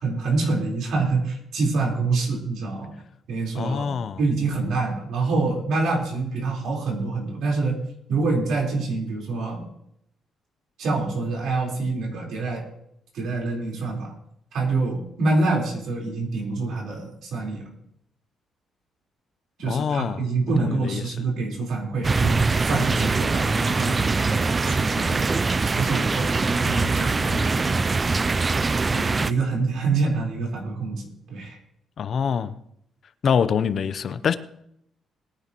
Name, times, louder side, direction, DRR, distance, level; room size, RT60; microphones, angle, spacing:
voice 1, 0.0-2.9 3.3-3.9 4.2-7.8 8.1-9.7 10.8-12.6 13.1-14.1 14.5-17.6 19.6-25.2 25.7-27.7 28.9-31.0 31.3-31.6, right 3 dB, 75° right, 4.2 m, -26 dB
voice 2, 3.5-4.2 19.7-20.2 20.6-21.1 32.0-32.6 33.2-34.4, left 7 dB, 55° left, 0.7 m, -25 dB
sound 1, 22.0-29.3, right 4 dB, 30° right, 0.4 m, -23 dB
21.5 x 9.9 x 3.1 m
cardioid pair, 90°, 0 cm